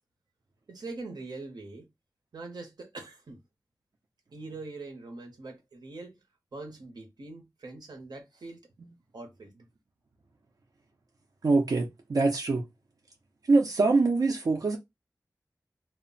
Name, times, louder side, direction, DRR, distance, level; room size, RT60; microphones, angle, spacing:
voice 1, 0.7-1.9 2.3-3.4 4.3-6.2 6.5-8.6 9.1-9.5, right 3 dB, 85° right, 0.8 m, -43 dB
voice 2, 11.4-12.6 13.5-14.8, right 3 dB, 65° right, 0.5 m, -24 dB
2.1 x 2.0 x 3.7 m
wide cardioid pair, 75°, 7 cm